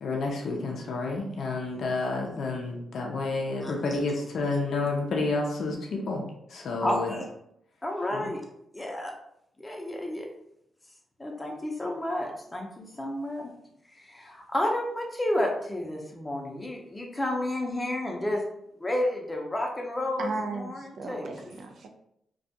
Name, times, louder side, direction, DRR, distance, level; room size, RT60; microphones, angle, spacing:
voice 1, 0.0-6.2 6.5-7.1 8.1-8.3, left 3 dB, 70° left, 0 dB, 0.5 m, -30 dB
voice 2, 6.8-7.3 7.8-8.4 8.7-9.1 9.6-10.3 11.2-13.5 14.0-18.4 18.8-21.3, left 1 dB, 20° left, 1 dB, 0.6 m, -31 dB
voice 3, 20.2-21.9, right 3 dB, 70° right, 4 dB, 0.4 m, -35 dB
2.3 x 2.2 x 2.7 m, 0.75 s
cardioid pair, 60°, 0 cm